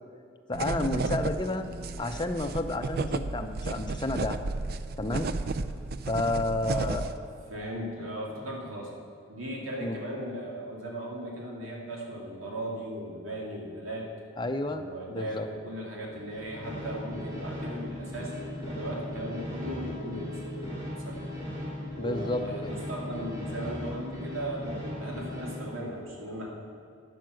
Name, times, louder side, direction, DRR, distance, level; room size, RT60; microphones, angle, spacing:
voice 1, 0.5-1.7 2.0-4.4 5.0-5.3 6.1-7.0 9.8-10.0 14.4-15.5 22.0-22.7, left 2 dB, 20° left, 6 dB, 0.6 m, -31 dB
sound 1, 0.5-7.2, right 3 dB, 50° right, 0.4 m, -33 dB
voice 2, 6.7-7.1 7.5-8.9 9.3-14.1 14.7-21.2 21.9-26.5, right 1 dB, 90° right, -2 dB, 2.5 m, -37 dB
sound 2, 16.1-25.7, left 1 dB, 20° right, 3.0 m, -38 dB
10.5 x 9.2 x 6.3 m, 2.5 s
head